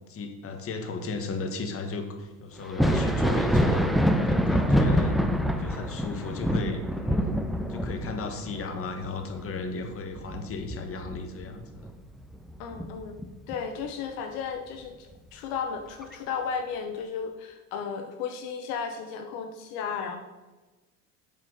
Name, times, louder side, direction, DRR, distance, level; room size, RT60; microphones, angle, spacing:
voice 1, 0.0-3.8 4.3-5.1 5.6-7.3 7.7-11.7, left 3 dB, 30° left, 5 dB, 1.3 m, -35 dB
Thunder, 2.6-12.0 12.3-13.6 15.1-15.2 16.0-16.2, equal, ahead, 0.3 m, -26 dB
voice 2, 4.7-5.3 12.6-13.2 13.5-20.2, left 6 dB, 65° left, 5 dB, 1.0 m, -34 dB
7.2 x 5.2 x 5.3 m, 1.2 s
hypercardioid pair, 95°, 44 cm